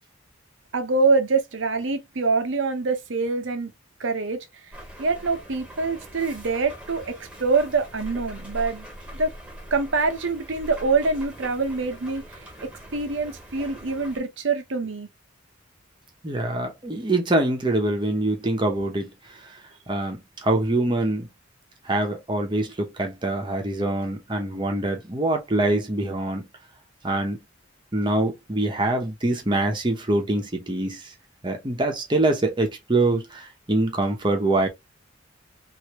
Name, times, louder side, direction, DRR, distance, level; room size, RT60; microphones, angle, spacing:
voice 1, 0.7-3.7 4.0-4.5 5.0-8.9 9.1-9.3 9.7-12.2 12.6-15.1, right 4 dB, 70° right, 0.8 m, -25 dB
sound 1, 4.7-14.2, equal, 5° right, 1.4 m, -42 dB
voice 2, 16.2-19.1 19.4-19.6 19.9-21.3 21.8-26.4 27.0-27.4 27.9-31.1 31.4-34.7, right 2 dB, 25° right, 0.9 m, -24 dB
3.2 x 2.7 x 2.9 m
head